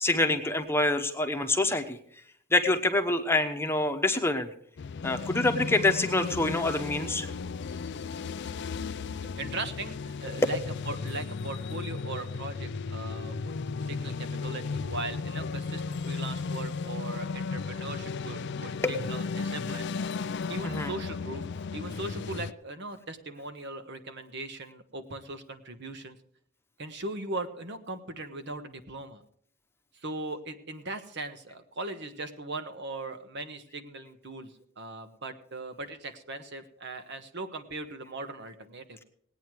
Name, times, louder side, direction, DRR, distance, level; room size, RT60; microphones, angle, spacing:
voice 1, 0.0-2.0 2.5-4.5 5.0-7.3 9.2-9.3 10.2-10.4 18.8-19.1 20.6-20.9, left 2 dB, 10° left, 5 dB, 1.0 m, -26 dB
sound 1, 4.8-22.5, left 4 dB, 60° left, 0.5 m, -35 dB
voice 2, 8.6-9.0 9.4-10.6 10.9-13.5 13.9-19.9 20.5-21.5 21.7-26.2 26.8-29.2 30.0-39.0, right 2 dB, 60° right, 8 dB, 1.3 m, -39 dB
19.0 x 9.2 x 4.8 m, 0.67 s
head